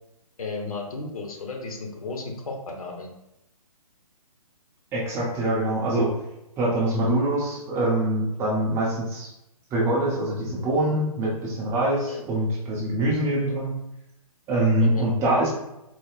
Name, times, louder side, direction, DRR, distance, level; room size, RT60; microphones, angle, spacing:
voice 1, 0.4-3.1 12.1-12.2 14.8-15.1, left 3 dB, 65° left, 1 dB, 0.9 m, -33 dB
voice 2, 4.9-6.1 6.6-9.3 9.7-13.7 14.5-15.5, right 1 dB, 15° right, -5 dB, 0.7 m, -24 dB
4.1 x 2.8 x 2.4 m, 0.87 s
hypercardioid pair, 145°, 19 cm